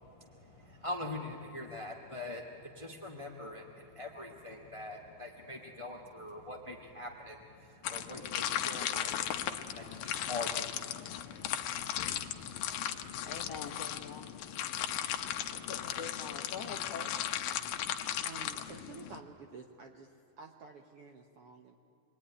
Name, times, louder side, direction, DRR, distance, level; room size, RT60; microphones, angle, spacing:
voice 1, 0.0-13.3, left 2 dB, 25° left, 1 dB, 0.7 m, -44 dB
sound 1, 7.8-19.2, left 11 dB, 85° left, 2.7 m, -36 dB
voice 2, 13.2-14.3 15.5-17.3, left 5 dB, 60° left, 4 dB, 1.9 m, -44 dB
voice 3, 18.2-20.1 20.4-21.8, right 4 dB, 65° right, 3 dB, 1.5 m, -50 dB
28.0 x 21.5 x 9.9 m, 2.5 s
omnidirectional pair, 4.0 m